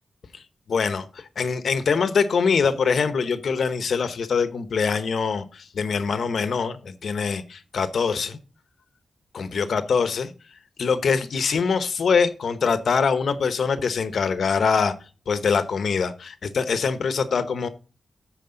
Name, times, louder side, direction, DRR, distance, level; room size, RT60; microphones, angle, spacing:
voice 1, 0.7-8.4 9.3-10.3 10.8-14.9 15.3-17.7, left 5 dB, 70° left, 12 dB, 1.0 m, -23 dB
14.5 x 5.0 x 3.9 m, 0.35 s
wide cardioid pair, 110°, 0 cm